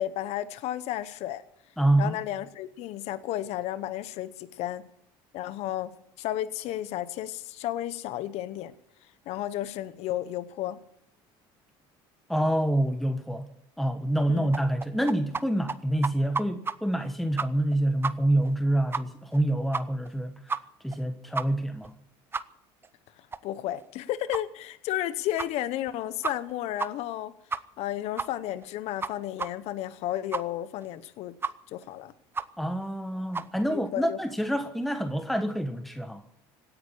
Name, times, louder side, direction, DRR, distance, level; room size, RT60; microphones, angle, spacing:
voice 1, 0.0-1.4 2.0-4.8 5.3-8.7 9.3-10.8 14.3-14.5 23.4-27.3 27.8-31.3 31.7-32.1 33.7-34.2, left 13 dB, 60° left, 0.9 m, -33 dB
voice 2, 1.8-2.2 12.3-13.5 13.8-20.3 20.8-21.9 32.6-36.2, right 1 dB, ahead, 1.2 m, -27 dB
sound 1, 14.5-15.4 15.7-15.8 16.0-16.7 17.0-17.1 17.4-17.8 18.0-18.1 18.4-18.5 18.9-19.0 19.3-19.4 19.7-20.1 20.5-20.6 20.9-21.0 21.4-21.5 21.8-21.9 22.3-22.4 22.8-22.9 23.3-23.4 23.8-23.9 24.3-24.4 24.9-25.0 25.4-25.5 25.9-26.0 26.2-26.5 26.8-26.9 27.1-27.2 27.5-27.9 28.2-28.3 28.6-28.7 29.0-29.1 29.4-29.5 29.8-29.9 30.3-30.4 30.8-30.9 31.4-31.5 31.8-31.9 32.3-32.5 32.8-32.9 33.3-33.5, right 4 dB, 20° right, 0.8 m, -31 dB
17.0 x 9.9 x 8.4 m
supercardioid pair, 100°, 12 cm